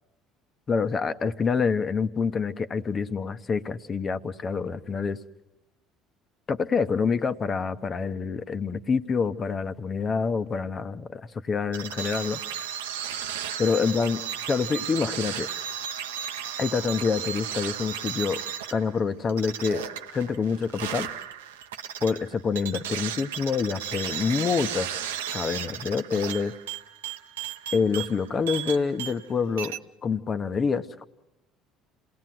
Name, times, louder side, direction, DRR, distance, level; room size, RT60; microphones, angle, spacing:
voice 1, 0.7-5.2 6.5-12.4 13.6-14.2 14.5-15.5 16.6-18.4 18.7-19.8 20.1-21.1 22.0-24.9 25.3-26.5 27.7-29.7 30.0-31.0, left 5 dB, 35° left, 11 dB, 1.1 m, -27 dB
sound 1, 11.7-29.3 29.6-29.8, right 9 dB, 85° right, 0.8 m, -35 dB
28.0 x 18.0 x 7.8 m, 0.95 s
hypercardioid pair, 70°, 0 cm